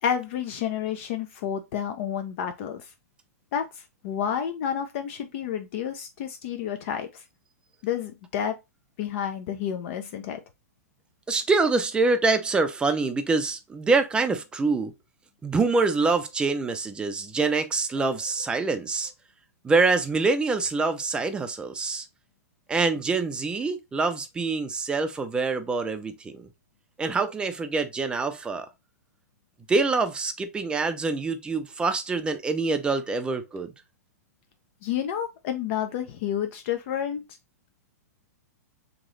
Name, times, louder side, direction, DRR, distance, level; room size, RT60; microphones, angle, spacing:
voice 1, 0.0-2.9 3.5-7.2 7.8-8.5 9.0-10.4 34.8-37.2, left 9 dB, 50° left, 0.6 m, -30 dB
voice 2, 11.3-14.9 15.4-19.1 19.6-22.1 22.7-26.5 27.0-28.7 29.7-33.7, right 3 dB, 10° right, 0.5 m, -25 dB
3.0 x 2.9 x 3.8 m
hypercardioid pair, 135°, 9 cm